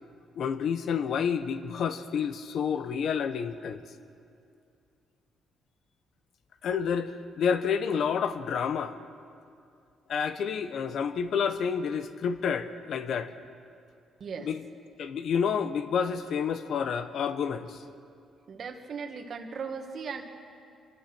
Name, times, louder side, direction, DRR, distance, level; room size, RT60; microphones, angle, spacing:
voice 1, 0.4-3.8 6.6-9.0 10.1-13.3 14.5-14.6 15.0-17.8, left 7 dB, 60° left, 10 dB, 1.0 m, -29 dB
voice 2, 14.2-14.5 18.5-20.2, right 5 dB, 45° right, 5 dB, 1.7 m, -37 dB
25.5 x 20.5 x 6.1 m, 2.4 s
cardioid pair, 150°, 0 cm